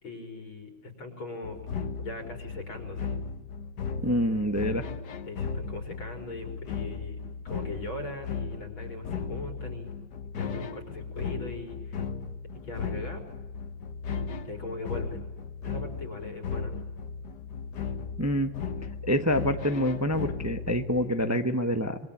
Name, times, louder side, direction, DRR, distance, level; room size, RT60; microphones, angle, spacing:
voice 1, 0.0-1.6 2.0-3.1 5.3-9.9 10.4-12.0 12.6-13.2 14.4-15.2 15.6-16.8, left 2 dB, 85° left, 4 dB, 5.3 m, -40 dB
sound 1, 1.4-21.3, left 5 dB, 55° left, 1.9 m, -36 dB
voice 2, 4.0-4.9 18.2-18.5 19.0-22.0, equal, 10° right, 7 dB, 0.8 m, -26 dB
26.0 x 24.0 x 8.7 m, 1.1 s
omnidirectional pair, 2.2 m